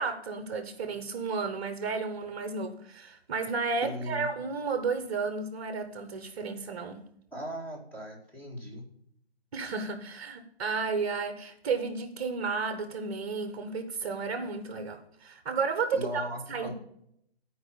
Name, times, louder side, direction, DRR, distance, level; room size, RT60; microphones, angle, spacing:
voice 1, 0.0-7.0 9.5-16.2 16.5-16.7, right 4 dB, 35° right, 8 dB, 1.0 m, -32 dB
voice 2, 3.8-4.3 7.3-8.8 16.0-16.7, equal, 5° left, -3 dB, 2.1 m, -38 dB
13.0 x 4.8 x 6.8 m, 0.71 s
hypercardioid pair, 150°, 31 cm